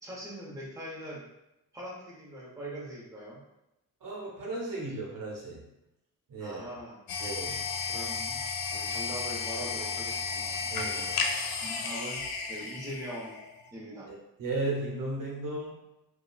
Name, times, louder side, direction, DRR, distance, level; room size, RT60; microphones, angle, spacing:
voice 1, 0.0-1.2 1.7-3.4 6.4-7.4 7.9-8.4 8.7-10.6 11.6-12.2 12.5-13.3 13.7-14.1, equal, 10° right, -5 dB, 0.9 m, -42 dB
voice 2, 4.0-5.6 6.3-6.6 7.2-7.6 10.6-11.2 14.1-15.7, right 2 dB, 65° right, -3 dB, 0.9 m, -35 dB
sound 1, 7.1-13.7, left 5 dB, 75° left, 0.5 m, -33 dB
2.9 x 2.2 x 2.4 m, 0.90 s
cardioid pair, 70°, 35 cm